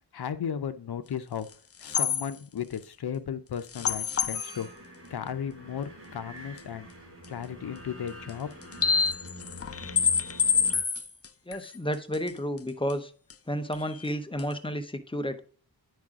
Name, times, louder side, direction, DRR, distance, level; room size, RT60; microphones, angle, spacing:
voice 1, 0.1-1.5 1.8-4.7 5.1-6.9 7.3-8.5, left 8 dB, 70° left, 11 dB, 0.7 m, -35 dB
sound 1, 1.5-1.6 1.8-2.3 3.7-4.6 6.6-6.7 7.2-7.3 8.3-8.4 8.6-12.3 12.6-12.7 12.9-13.0 13.3-13.4 13.7-14.1 14.4-14.5, left 6 dB, 40° left, 0.4 m, -27 dB
sound 2, 4.3-10.8, equal, 30° right, 3.2 m, -46 dB
voice 2, 11.5-13.1 13.5-15.4, equal, 15° left, 8 dB, 0.7 m, -31 dB
9.4 x 4.8 x 3.6 m, 0.40 s
wide cardioid pair, 85°, 40 cm